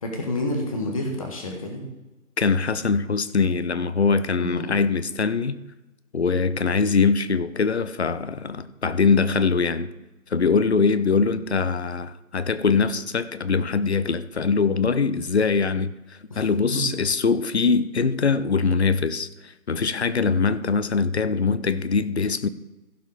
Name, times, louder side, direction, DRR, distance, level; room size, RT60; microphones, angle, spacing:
voice 1, 0.0-1.8 4.4-4.7 16.3-16.4 16.7-16.8, left 1 dB, 25° left, 1.6 m, -29 dB
voice 2, 2.4-5.6 6.1-9.9 10.3-22.5, left 5 dB, 50° left, 0.7 m, -22 dB
16.0 x 5.4 x 5.2 m
figure-of-eight pair, 155°, 41 cm